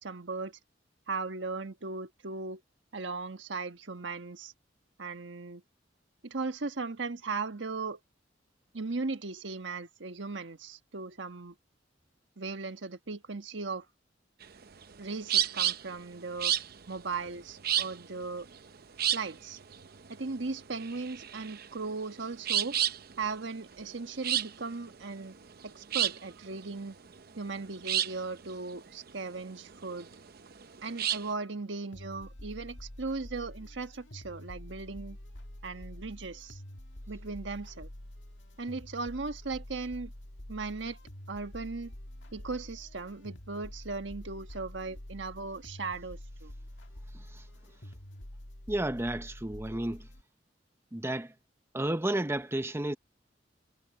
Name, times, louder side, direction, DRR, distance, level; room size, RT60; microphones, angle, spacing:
voice 1, 0.0-0.6 1.1-2.6 2.9-4.5 5.0-5.6 6.2-8.0 8.7-11.5 12.4-13.8 15.0-16.5 16.9-18.5 19.1-19.6 20.1-22.8 23.2-25.4 25.6-26.9 27.4-30.1 30.8-35.2 35.6-36.6 37.1-37.9 38.6-40.1 40.5-41.0 41.3-41.9 42.3-46.5, right 3 dB, 75° right, 1.3 m, -37 dB
sound 1, 14.4-31.3, right 10 dB, 55° right, 0.8 m, -32 dB
sound 2, 31.9-50.2, left 1 dB, 75° left, 2.0 m, -47 dB
voice 2, 48.7-50.1 50.9-51.3 51.7-53.0, right 1 dB, 15° right, 0.8 m, -32 dB
head